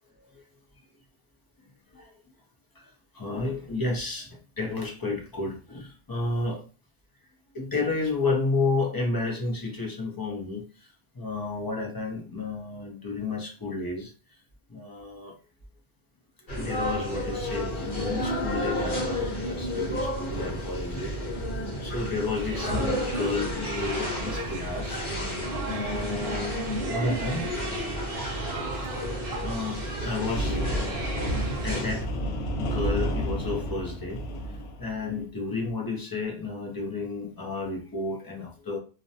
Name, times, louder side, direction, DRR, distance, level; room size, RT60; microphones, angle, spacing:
voice 1, 3.1-4.3 4.6-6.6 7.5-10.6 11.2-14.1 14.7-15.4 16.6-21.1 21.8-25.0 25.6-26.5 26.9-27.4 29.4-30.6 31.3-32.1 32.6-34.4 34.8-38.8, left 3 dB, 25° left, 1 dB, 0.5 m, -31 dB
sound 1, 16.5-32.0, equal, 55° left, 1.1 m, -31 dB
sound 2, 22.3-31.8, right 4 dB, 65° right, 0.9 m, -38 dB
sound 3, 30.3-35.2, equal, 80° left, 0.8 m, -31 dB
2.5 x 2.1 x 2.7 m, 0.34 s
omnidirectional pair, 1.0 m